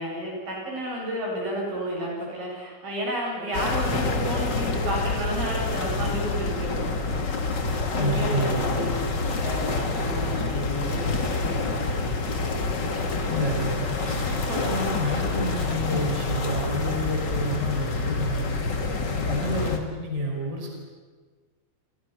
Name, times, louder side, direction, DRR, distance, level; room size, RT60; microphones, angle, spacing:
voice 1, 0.0-7.5 7.9-11.0 11.4-11.8, equal, 60° right, -2 dB, 9.4 m, -32 dB
sound 1, 3.5-19.8, left 3 dB, 35° left, 2.0 m, -27 dB
voice 2, 8.0-8.6 13.2-18.5 19.1-20.7, equal, 15° right, -1 dB, 5.4 m, -29 dB
29.5 x 25.5 x 6.0 m, 1.4 s
omnidirectional pair, 4.5 m